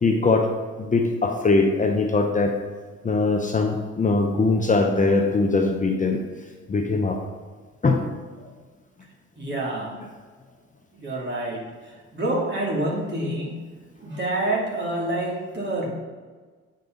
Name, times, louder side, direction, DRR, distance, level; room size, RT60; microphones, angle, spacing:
voice 1, 0.0-0.5 0.8-2.5 3.0-6.2 6.7-7.2 7.8-8.0, left 3 dB, 25° left, 3 dB, 0.8 m, -21 dB
voice 2, 9.4-9.9 10.9-11.6 12.1-13.6 14.0-15.9, right 1 dB, 35° right, -3 dB, 2.6 m, -27 dB
9.3 x 5.4 x 3.9 m, 1.4 s
cardioid pair, 90°, 30 cm